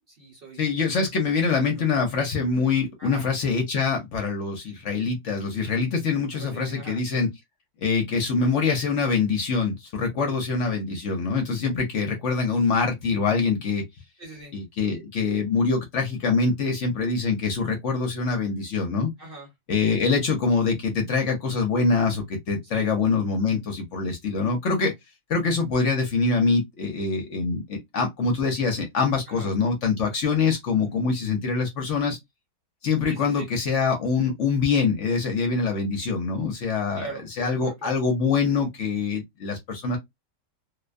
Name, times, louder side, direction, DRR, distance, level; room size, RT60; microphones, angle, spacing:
voice 1, 0.1-0.6 1.4-1.7 3.0-3.3 6.3-7.0 14.2-14.5 19.2-19.5 22.7-22.9 29.3-29.5 33.1-33.5 37.0-38.0, right 4 dB, 45° right, 0.9 m, -41 dB
voice 2, 0.6-7.3 7.8-13.8 14.5-19.1 19.7-24.9 25.3-32.2 32.8-40.0, left 4 dB, 60° left, 0.9 m, -24 dB
2.5 x 2.1 x 2.4 m
omnidirectional pair, 1.6 m